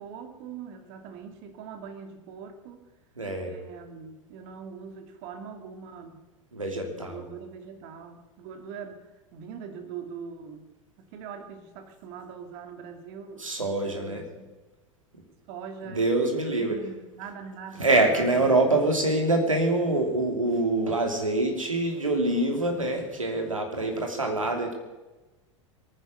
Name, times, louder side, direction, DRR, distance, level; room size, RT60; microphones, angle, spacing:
voice 1, 0.0-2.9 3.5-6.2 6.7-10.7 11.0-13.5 13.8-14.6 15.5-19.3, right 6 dB, 50° right, 7 dB, 2.3 m, -42 dB
voice 2, 3.2-3.5 6.5-7.2 13.4-14.2 15.8-16.8 17.8-24.7, right 2 dB, 85° right, 3 dB, 2.9 m, -25 dB
22.0 x 9.7 x 6.6 m, 1.1 s
figure-of-eight pair, 85°, 17 cm